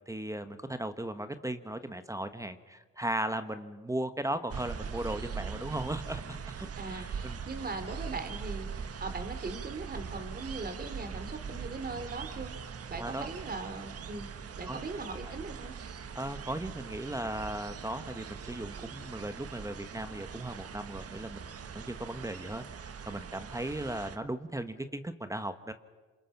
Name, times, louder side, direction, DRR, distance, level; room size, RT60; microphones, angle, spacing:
voice 1, 0.0-7.4 13.0-13.3 14.1-14.3 14.7-14.8 16.1-25.7, right 1 dB, 10° right, 10 dB, 1.2 m, -37 dB
sound 1, 4.5-24.2, right 6 dB, 50° right, 1.4 m, -42 dB
voice 2, 6.8-12.5 12.9-14.3 14.6-15.7, right 3 dB, 30° right, 7 dB, 3.4 m, -40 dB
28.0 x 27.0 x 5.9 m, 1.3 s
cardioid pair, 90°, 30 cm